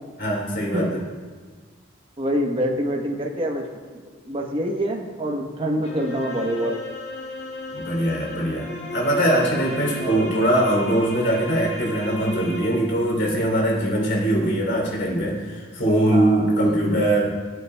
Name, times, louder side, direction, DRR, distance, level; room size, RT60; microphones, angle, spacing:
voice 1, 0.2-1.0 7.7-17.3, right 1 dB, 55° left, -1 dB, 3.1 m, -22 dB
voice 2, 2.2-3.6 3.9-6.8 10.0-10.5 16.1-17.0, equal, 25° right, 1 dB, 1.0 m, -26 dB
sound 1, 5.8-13.1, left 1 dB, 30° left, 1.4 m, -35 dB
19.5 x 8.2 x 2.2 m, 1.5 s
head